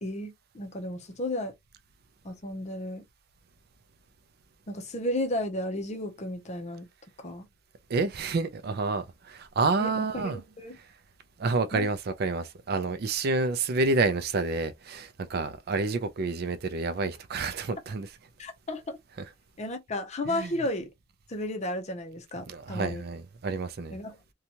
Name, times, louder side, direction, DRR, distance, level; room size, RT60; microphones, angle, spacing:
voice 1, 0.0-1.5 2.2-3.0 4.7-6.9 7.2-7.5 9.8-10.8 11.7-11.9 18.4-19.0 19.6-20.9 21.3-23.0 23.9-24.2, left 1 dB, 35° left, 0.7 m, -33 dB
voice 2, 7.9-10.4 10.8-10.9 11.4-18.1 20.2-20.5 22.5-24.0, right 3 dB, 55° right, 0.4 m, -29 dB
2.7 x 2.3 x 2.8 m
head